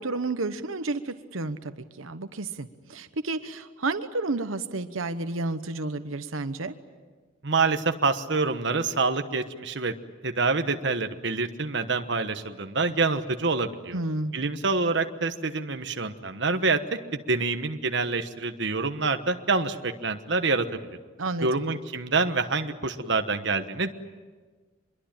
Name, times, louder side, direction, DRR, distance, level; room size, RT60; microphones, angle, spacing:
voice 1, 0.0-6.7 13.9-14.3 21.2-21.5, right 2 dB, 90° right, 10 dB, 1.1 m, -31 dB
voice 2, 7.4-9.9 10.2-14.0 14.3-16.8 17.1-20.8 21.4-23.9, right 3 dB, 60° right, 7 dB, 1.2 m, -26 dB
25.5 x 22.5 x 9.0 m, 1.4 s
head